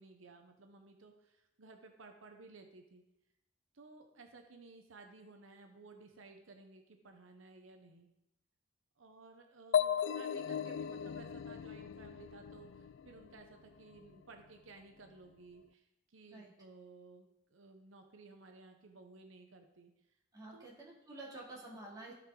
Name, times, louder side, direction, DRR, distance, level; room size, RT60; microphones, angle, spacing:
voice 1, 0.0-3.0 3.7-8.1 9.0-19.9 20.5-20.7, right 3 dB, 80° right, 5 dB, 0.9 m, -57 dB
sound 1, 9.7-13.4, left 8 dB, 65° left, 0.3 m, -36 dB
voice 2, 20.3-22.1, right 2 dB, 20° right, -5 dB, 2.4 m, -49 dB
14.5 x 5.0 x 3.8 m, 0.88 s
head